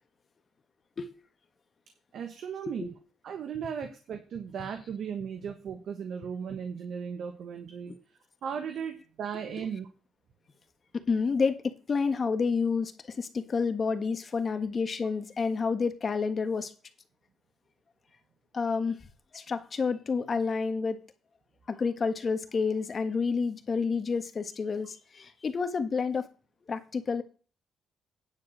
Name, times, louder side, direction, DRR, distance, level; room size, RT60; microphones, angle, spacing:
voice 1, 2.1-2.9 3.2-8.0 8.4-9.9, right 7 dB, 65° right, 1.3 m, -36 dB
voice 2, 10.9-16.7 18.5-19.0 19.3-21.0 21.7-26.3 26.7-27.2, left 5 dB, 40° left, 1.5 m, -29 dB
9.7 x 4.6 x 7.8 m
cardioid pair, 90°, 0 cm